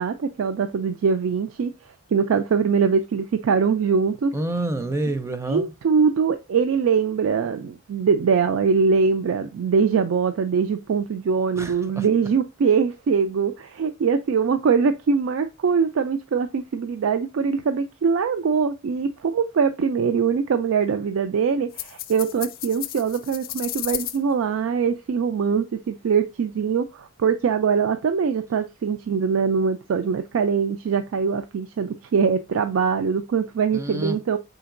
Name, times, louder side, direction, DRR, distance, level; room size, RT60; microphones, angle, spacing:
voice 1, 0.0-1.7 2.1-4.3 5.5-34.4, right 6 dB, 75° right, 0.4 m, -22 dB
voice 2, 4.3-5.7 11.6-12.1 33.7-34.2, right 1 dB, 15° right, 0.5 m, -28 dB
sound 1, 21.7-24.2, left 14 dB, 45° left, 0.4 m, -33 dB
5.0 x 3.9 x 2.5 m
head